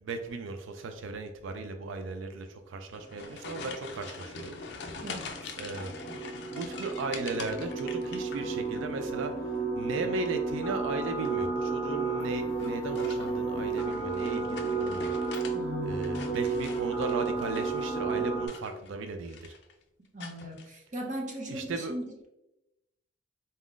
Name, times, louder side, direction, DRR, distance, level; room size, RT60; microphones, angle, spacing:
voice 1, 0.0-4.6 5.6-5.9 6.5-9.4 9.8-15.1 15.8-19.5 21.5-21.9, right 3 dB, 75° right, 7 dB, 0.4 m, -36 dB
sound 1, 2.8-8.8 9.1-9.7 11.1-11.5 12.5-15.6 15.9-17.9 18.4-19.0 19.2-19.7 20.2-20.7, left 4 dB, 55° left, 0.4 m, -44 dB
sound 2, 3.5-18.5, right 4 dB, 15° right, 1.3 m, -33 dB
voice 2, 5.0-5.5 15.5-16.4 20.1-22.3, equal, 40° right, 0 dB, 0.7 m, -38 dB
4.1 x 3.7 x 2.4 m, 0.92 s
head